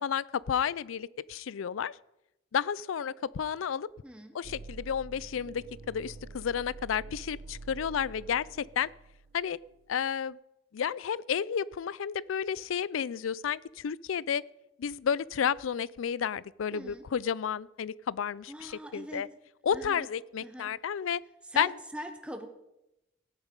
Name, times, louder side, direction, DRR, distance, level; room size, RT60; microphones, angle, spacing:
voice 1, 0.0-2.0 2.5-3.9 4.3-8.9 9.3-9.6 9.9-10.4 10.7-14.4 14.8-19.3 19.6-21.2 21.6-21.7, left 7 dB, 85° left, 22 dB, 0.4 m, -31 dB
voice 2, 4.0-4.3 16.7-17.1 18.5-19.2 19.7-20.1 20.4-20.7 21.4-22.5, right 1 dB, 5° right, 5 dB, 1.0 m, -41 dB
sound 1, 4.4-9.9, right 3 dB, 90° right, 0.7 m, -47 dB
15.0 x 10.5 x 5.2 m, 0.91 s
head